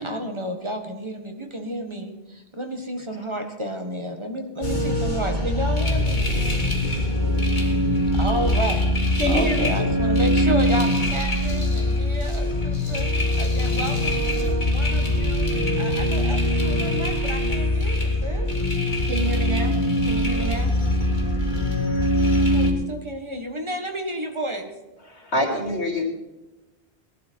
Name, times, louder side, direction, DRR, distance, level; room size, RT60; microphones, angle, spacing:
voice 1, 0.0-6.2 8.1-13.1 13.4-15.5 15.8-18.5 22.2-24.7, equal, 25° right, 4 dB, 1.8 m, -31 dB
sound 1, 4.6-22.7, left 1 dB, 45° left, 2.3 m, -22 dB
voice 2, 9.2-9.9 19.0-20.7, right 2 dB, 80° right, 2 dB, 2.8 m, -28 dB
voice 3, 25.1-26.1, left 1 dB, 85° left, 1 dB, 3.5 m, -25 dB
20.0 x 11.5 x 4.7 m, 1.0 s
omnidirectional pair, 1.1 m